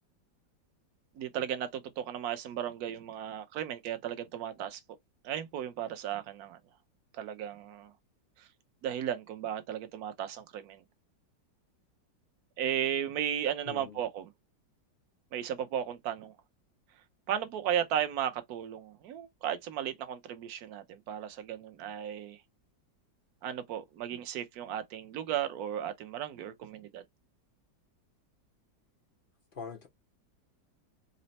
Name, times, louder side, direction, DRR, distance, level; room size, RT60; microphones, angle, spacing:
voice 1, 1.2-4.8 5.2-6.6 7.1-7.9 8.4-8.5 8.8-10.8 12.6-14.3 15.3-16.3 17.3-22.4 23.4-27.0, right 10 dB, 65° right, 1.1 m, -35 dB
voice 2, 13.6-14.0 29.5-29.9, left 6 dB, 80° left, 0.4 m, -43 dB
4.1 x 2.0 x 4.0 m
omnidirectional pair, 2.0 m